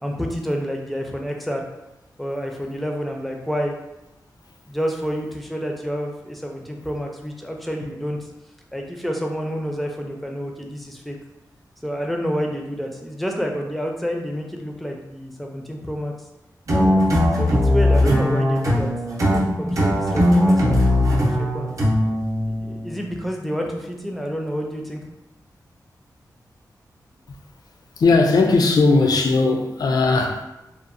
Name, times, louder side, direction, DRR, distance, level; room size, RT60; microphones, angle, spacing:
voice 1, 0.0-1.7 2.2-3.7 4.7-8.2 8.7-11.2 11.8-16.1 16.7-17.0 17.4-18.9 19.2-21.7 22.5-25.0, equal, ahead, 1 dB, 0.4 m, -29 dB
sound 1, 16.7-23.1, left 1 dB, 50° right, 0.6 m, -19 dB
voice 2, 28.0-30.4, left 3 dB, 70° left, 3 dB, 0.4 m, -18 dB
2.8 x 2.0 x 2.5 m, 0.97 s
wide cardioid pair, 75°, 7 cm